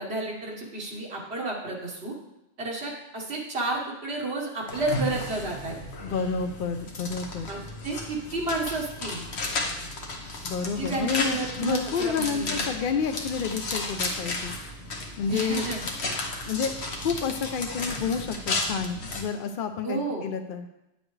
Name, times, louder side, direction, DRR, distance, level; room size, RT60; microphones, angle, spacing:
voice 1, 0.0-2.1 2.6-5.7 7.5-9.2 10.8-12.6 15.3-15.8 19.8-20.3, right 2 dB, 85° right, -1 dB, 1.8 m, -31 dB
sound 1, 4.7-19.2, left 2 dB, 85° left, 1.3 m, -33 dB
voice 2, 6.0-7.5 10.4-14.6 15.2-15.7 16.5-20.7, left 6 dB, 60° left, 7 dB, 0.7 m, -30 dB
9.7 x 7.1 x 3.2 m, 0.91 s
omnidirectional pair, 1.1 m